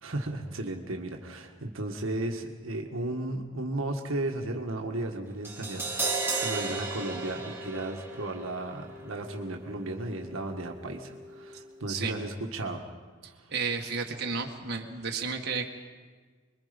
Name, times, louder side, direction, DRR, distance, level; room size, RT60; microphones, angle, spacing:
voice 1, 0.0-12.9 13.3-13.5, right 2 dB, 70° right, 2 dB, 1.7 m, -35 dB
Crash cymbal, 5.4-11.6 11.9-12.0, right 3 dB, 10° right, 2.3 m, -36 dB
Cymbal, 5.9-7.4, right 8 dB, 35° left, 3.1 m, -44 dB
voice 2, 13.2-15.7, right 5 dB, 50° right, 1 dB, 1.8 m, -33 dB
25.0 x 22.0 x 5.3 m, 1.5 s
head